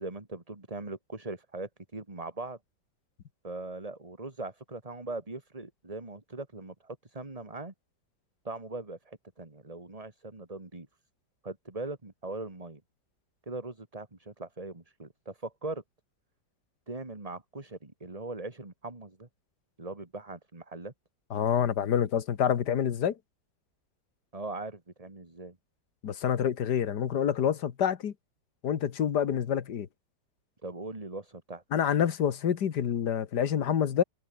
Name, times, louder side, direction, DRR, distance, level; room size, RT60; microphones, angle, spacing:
voice 1, 0.0-2.6 3.4-7.7 8.4-10.9 11.4-12.8 13.5-15.8 16.9-19.3 19.8-20.9 24.3-25.6 30.6-31.6, right 2 dB, 20° right, 2.4 m, -40 dB
voice 2, 21.3-23.2 26.0-28.1 28.6-29.9 31.7-34.0, left 8 dB, 60° left, 1.9 m, -27 dB
omnidirectional pair, 2.0 m